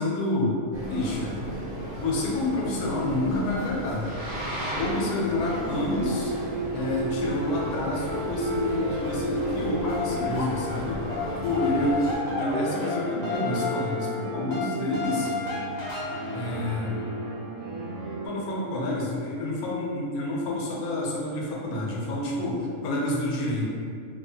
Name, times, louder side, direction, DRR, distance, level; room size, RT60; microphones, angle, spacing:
voice 1, 0.0-1.4 1.9-4.1 4.7-6.3 6.7-11.0 11.4-15.3 16.3-17.0 18.2-23.7, left 2 dB, 80° left, -3 dB, 1.1 m, -28 dB
Boat Water vehicle, 0.7-12.2, equal, 50° right, 0.6 m, -36 dB
sound 1, 4.9-18.3, right 1 dB, 85° right, 1.1 m, -34 dB
sound 2, 9.6-10.8 11.1-17.2, left 3 dB, 45° left, 0.6 m, -33 dB
3.1 x 2.3 x 2.7 m, 2.3 s
omnidirectional pair, 1.5 m